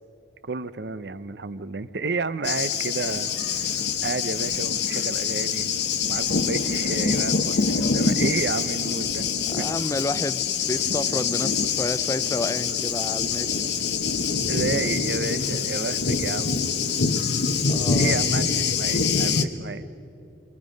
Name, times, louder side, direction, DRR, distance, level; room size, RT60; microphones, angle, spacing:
voice 1, 0.4-9.3 9.6-9.7 14.5-16.6 18.0-19.9, right 4 dB, 70° right, 14 dB, 0.7 m, -31 dB
Thunder, 2.4-19.4, left 5 dB, 75° left, 1.1 m, -25 dB
voice 2, 9.5-13.6 17.7-18.2, left 2 dB, 20° left, 15 dB, 0.4 m, -30 dB
28.0 x 22.5 x 5.2 m, 2.9 s
head